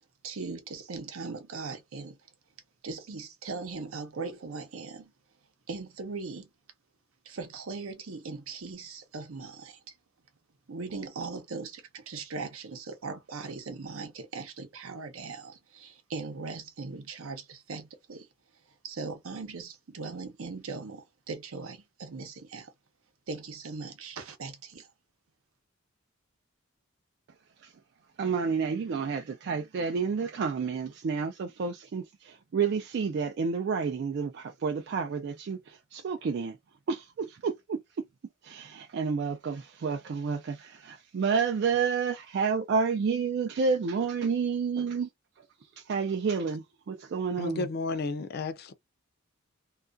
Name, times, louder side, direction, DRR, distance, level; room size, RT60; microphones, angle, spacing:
voice 1, 0.2-2.2 2.8-5.1 5.7-6.5 7.2-9.9 10.7-18.3 18.8-22.7 23.3-24.9, right 4 dB, 75° right, 0.7 m, -39 dB
voice 2, 28.2-36.6 36.9-38.1 38.4-45.1 45.8-47.7, right 5 dB, 50° right, 0.3 m, -30 dB
voice 3, 47.4-48.7, left 3 dB, 45° left, 0.4 m, -32 dB
2.3 x 2.2 x 2.4 m
head